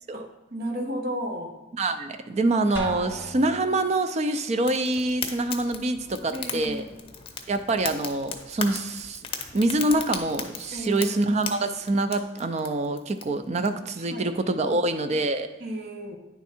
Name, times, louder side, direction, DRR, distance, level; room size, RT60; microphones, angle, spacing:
voice 1, 0.5-1.5 6.3-6.9 10.7-11.1 14.1-14.3 14.7-14.8 15.6-16.2, equal, 60° right, 1 dB, 1.1 m, -33 dB
voice 2, 1.7-6.9 7.5-9.2 9.5-15.5, right 2 dB, 35° right, 9 dB, 0.4 m, -25 dB
Drum, 2.8-4.0, equal, 15° right, 1.1 m, -37 dB
Fire, 4.7-13.7, left 6 dB, 30° left, 0.6 m, -37 dB
9.4 x 3.5 x 4.3 m, 1.0 s
head